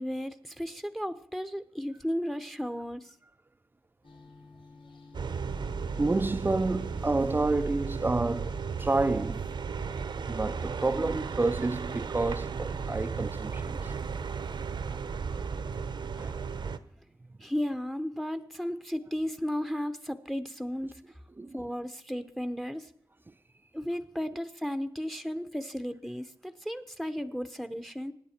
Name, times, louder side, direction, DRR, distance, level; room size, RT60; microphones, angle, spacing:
voice 1, 0.0-3.1 17.4-21.0 21.5-22.9 23.7-28.1, equal, 5° left, 0.9 m, -34 dB
sound 1, 4.0-14.2, left 3 dB, 70° left, 3.1 m, -55 dB
sound 2, 5.1-16.8, right 5 dB, 65° right, 0.9 m, -35 dB
voice 2, 6.0-8.5 8.8-9.4 10.3-13.9 16.2-16.4 21.4-21.6, right 2 dB, 25° right, 0.5 m, -29 dB
24.5 x 10.0 x 4.4 m
wide cardioid pair, 95°, 8 cm